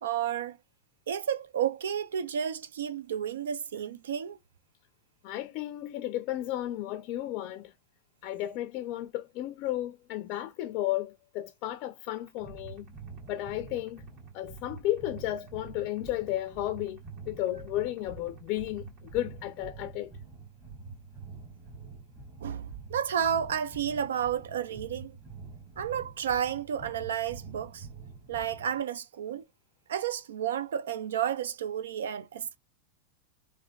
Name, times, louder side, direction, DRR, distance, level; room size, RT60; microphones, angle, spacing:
voice 1, 0.0-0.6 1.1-4.4 22.4-25.2 25.8-27.9 28.3-29.4 29.9-32.6, right 9 dB, 90° right, 0.4 m, -31 dB
voice 2, 5.2-7.7 8.2-12.9 13.3-14.1 14.3-20.1, left 14 dB, 50° left, 0.4 m, -33 dB
sound 1, 12.1-19.6, right 13 dB, 55° right, 1.8 m, -62 dB
sound 2, 12.4-28.8, right 4 dB, 25° right, 1.3 m, -46 dB
3.4 x 2.1 x 2.2 m
supercardioid pair, 130°, 0 cm